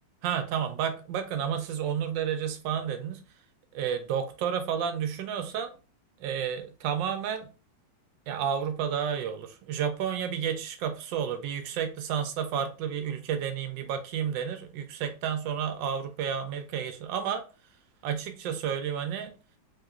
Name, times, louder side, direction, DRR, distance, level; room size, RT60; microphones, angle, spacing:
voice 1, 0.2-3.2 3.7-5.7 6.2-7.5 8.3-17.4 18.0-19.3, right 8 dB, 80° right, 1.2 m, -31 dB
3.6 x 2.8 x 2.4 m
omnidirectional pair, 2.0 m